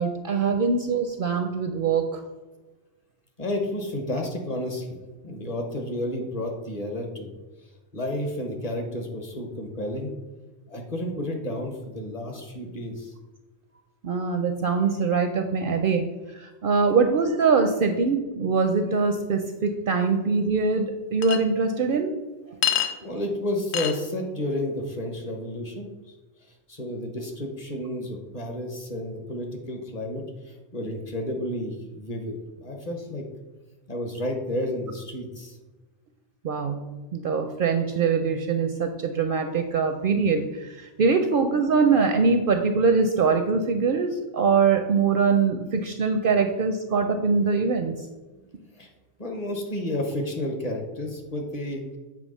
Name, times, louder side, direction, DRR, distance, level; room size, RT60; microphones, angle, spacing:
voice 1, 0.0-2.2 14.0-16.1 16.3-22.1 36.4-36.8 37.1-48.0, right 5 dB, 60° right, 6 dB, 0.6 m, -23 dB
voice 2, 3.4-5.0 5.2-7.3 7.9-10.1 10.7-13.1 23.0-25.9 26.7-33.2 33.9-35.6 48.3-48.4 48.7-48.9 49.2-52.0, left 1 dB, 35° left, 3 dB, 1.0 m, -31 dB
Chink clink, 21.2-21.4 22.6-22.9 23.7-23.9, left 10 dB, 70° left, 0.9 m, -24 dB
7.7 x 3.2 x 5.4 m, 1.2 s
omnidirectional pair, 1.2 m